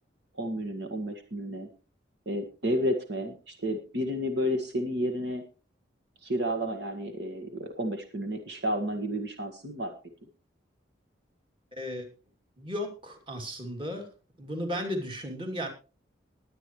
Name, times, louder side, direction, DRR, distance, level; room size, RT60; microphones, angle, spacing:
voice 1, 0.4-1.7 2.2-5.4 6.2-9.9, equal, 60° right, 4 dB, 1.7 m, -31 dB
voice 2, 11.7-12.1 12.6-14.1 14.4-15.7, equal, 25° right, 3 dB, 2.6 m, -34 dB
20.5 x 9.2 x 3.1 m, 0.33 s
head